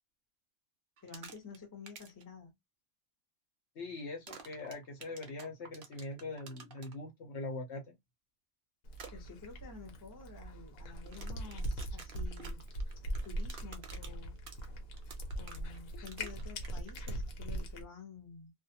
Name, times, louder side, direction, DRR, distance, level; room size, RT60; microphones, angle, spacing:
voice 1, 1.0-2.5 9.1-12.6 13.2-14.4 15.4-18.5, left 5 dB, 20° left, 0.6 m, -50 dB
sound 1, 1.0-1.6 1.9-2.2 4.3-6.9 8.9-9.1 11.0-17.2, right 5 dB, 60° right, 0.6 m, -51 dB
voice 2, 3.8-7.9, left 2 dB, 60° left, 0.9 m, -42 dB
Cat, 8.9-17.8, right 1 dB, 80° left, 1.1 m, -41 dB
2.5 x 2.1 x 2.7 m
omnidirectional pair, 1.5 m